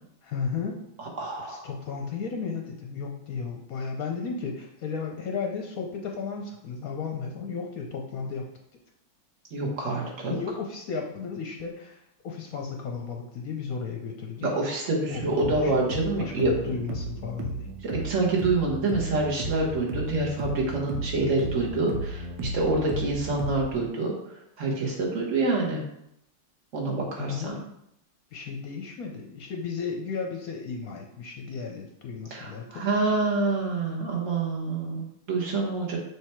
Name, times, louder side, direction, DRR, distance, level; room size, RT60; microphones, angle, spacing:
voice 1, 0.2-0.8 1.4-8.5 10.3-14.5 15.1-15.9 16.2-17.7 27.2-27.6 28.3-32.8, left 5 dB, 60° left, 1 dB, 1.0 m, -34 dB
voice 2, 1.0-1.7 9.5-10.3 14.4-16.5 17.8-25.8 26.7-27.5 32.3-36.0, right 3 dB, 45° right, -2 dB, 1.7 m, -27 dB
sound 1, 15.1-23.7, right 2 dB, 90° right, 1.6 m, -34 dB
6.6 x 3.2 x 4.5 m, 0.76 s
omnidirectional pair, 2.0 m